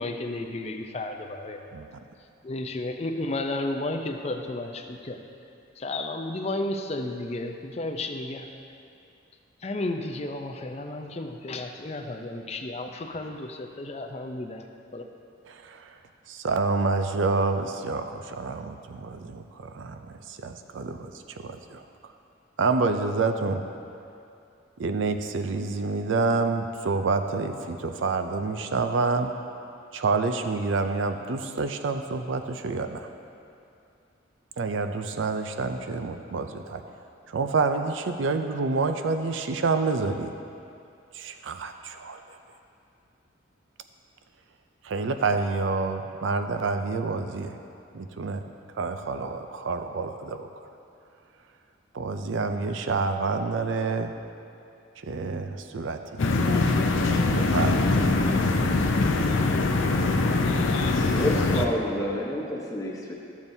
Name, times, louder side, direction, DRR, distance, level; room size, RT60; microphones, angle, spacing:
voice 1, 0.0-1.7 2.4-5.2 5.8-8.5 9.6-14.7 14.9-15.1, left 2 dB, 30° left, 5 dB, 0.5 m, -33 dB
voice 2, 15.5-16.0 16.3-21.8 22.6-23.6 24.8-29.3 29.9-33.1 34.6-36.8 37.3-40.3 41.1-42.2 44.8-47.6 47.9-48.4 48.8-50.5 51.9-54.1 55.0-56.3 56.7-58.4, right 3 dB, 75° right, 7 dB, 0.4 m, -28 dB
sound 1, 56.2-61.6, left 3 dB, 75° left, 0.6 m, -23 dB
voice 3, 60.9-63.1, left 1 dB, 15° left, -3 dB, 0.9 m, -29 dB
13.5 x 7.1 x 2.7 m, 2.6 s
head